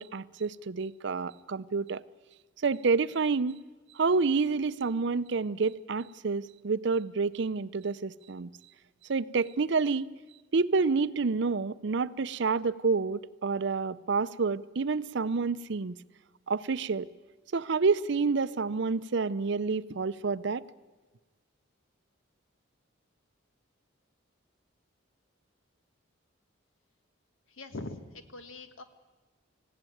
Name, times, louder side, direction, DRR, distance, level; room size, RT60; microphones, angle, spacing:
voice 1, 0.0-2.0 2.6-3.6 3.9-8.5 9.1-10.1 10.5-16.0 16.5-17.1 17.5-20.6, right 4 dB, 60° right, 16 dB, 0.5 m, -28 dB
voice 2, 27.5-28.8, left 2 dB, 75° left, 9 dB, 1.6 m, -42 dB
19.0 x 16.0 x 9.2 m, 1.2 s
head